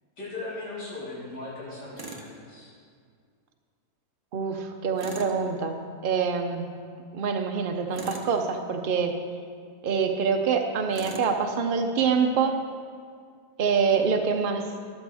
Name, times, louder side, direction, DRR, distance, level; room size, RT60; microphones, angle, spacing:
voice 1, 0.2-2.7, left 2 dB, 75° left, -9 dB, 4.3 m, -38 dB
Tools, 2.0-2.3 5.0-5.4 7.9-8.4 10.9-11.3, right 2 dB, 20° right, 0.7 m, -39 dB
voice 2, 4.3-5.8 6.0-6.7 7.1-9.1 9.8-12.5 13.6-14.6, right 6 dB, 70° right, 4 dB, 0.5 m, -25 dB
13.5 x 12.0 x 3.4 m, 2.1 s
omnidirectional pair, 1.8 m